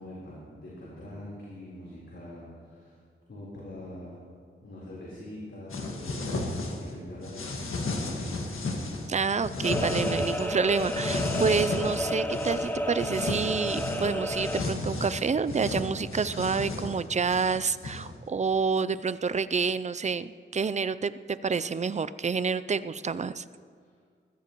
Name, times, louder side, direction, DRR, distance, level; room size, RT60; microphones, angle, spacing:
voice 1, 0.0-3.0 3.3-4.3 4.6-7.4 7.7-8.4 23.8-23.9, left 1 dB, 65° left, -7 dB, 3.9 m, -44 dB
sound 1, 5.7-6.9 7.2-9.1 9.4-10.5 10.7-12.7 13.0-18.1, left 2 dB, 90° left, 1.7 m, -33 dB
voice 2, 9.1-23.4, right 5 dB, 35° right, 14 dB, 0.4 m, -28 dB
sound 2, 9.6-14.6, equal, 10° left, 0.9 m, -31 dB
20.5 x 15.5 x 3.0 m, 2.1 s
wide cardioid pair, 100°, 21 cm